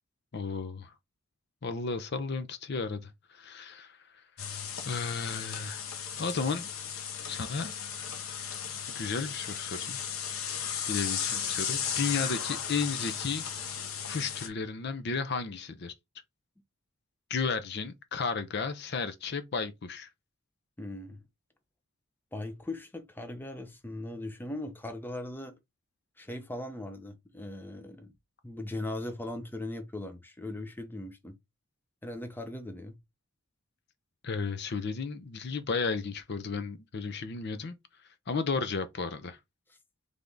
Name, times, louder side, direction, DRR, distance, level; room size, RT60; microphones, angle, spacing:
voice 1, 0.3-0.9 1.6-4.0 4.8-5.8 6.2-6.7 7.3-7.7 8.9-10.0 10.9-13.4 14.0-15.9 17.3-20.1 34.2-37.8 38.3-39.4, left 5 dB, 55° left, 0.5 m, -33 dB
sound 1, 4.4-14.5, left 8 dB, 90° left, 0.8 m, -35 dB
voice 2, 20.8-21.2 22.3-25.6 26.2-28.1 28.4-31.3 32.0-33.0, left 1 dB, 10° left, 0.6 m, -39 dB
3.5 x 3.4 x 3.8 m
head